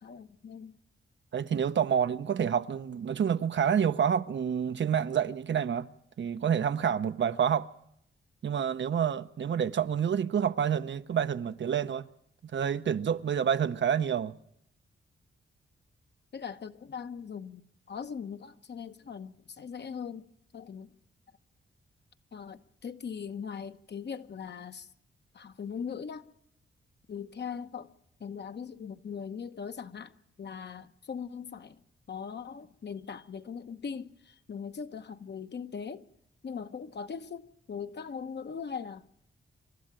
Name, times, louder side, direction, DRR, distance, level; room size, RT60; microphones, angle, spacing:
voice 1, 0.0-0.7 16.3-20.3 20.5-20.9 22.3-24.9 25.3-26.2 27.1-27.9 28.2-30.1 30.4-31.8 32.1-36.0 36.4-39.1, left 6 dB, 55° left, 1.0 m, -40 dB
voice 2, 1.3-5.9 6.2-7.7 8.4-12.0 12.5-14.3, right 8 dB, 60° right, 0.8 m, -28 dB
27.0 x 12.5 x 8.9 m
cardioid pair, 80°, 21 cm